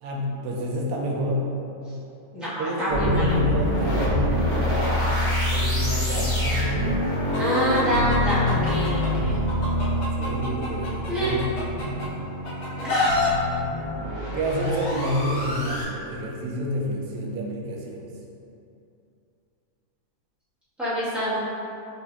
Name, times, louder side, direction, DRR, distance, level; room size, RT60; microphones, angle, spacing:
voice 1, 0.0-1.5 2.6-5.1 5.5-7.3 10.2-11.5 14.3-18.1, equal, 70° right, -1 dB, 1.0 m, -28 dB
voice 2, 2.3-3.3 7.4-9.4 11.1-11.3 12.8-12.9 20.8-21.4, equal, ahead, -13 dB, 1.1 m, -26 dB
sound 1, 2.9-15.8, left 1 dB, 25° left, 1.5 m, -26 dB
Chicken rooster, 7.3-9.1 9.5-12.1 12.4-13.3, left 2 dB, 55° left, 0.9 m, -27 dB
5.0 x 2.7 x 2.3 m, 2.7 s
omnidirectional pair, 1.6 m